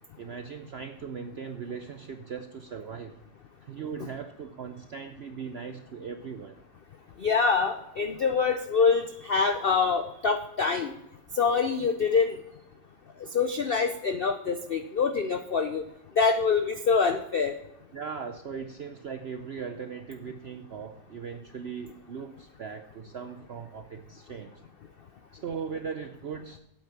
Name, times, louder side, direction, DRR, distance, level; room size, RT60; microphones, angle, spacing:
voice 1, 0.2-3.2 3.6-6.6 13.8-14.2 17.9-24.5 25.3-26.6, right 6 dB, 70° right, 7 dB, 0.6 m, -39 dB
voice 2, 7.2-10.9 11.3-12.4 13.3-15.8 16.2-17.5, left 5 dB, 70° left, 7 dB, 0.5 m, -25 dB
8.6 x 8.5 x 5.9 m, 0.82 s
omnidirectional pair, 1.8 m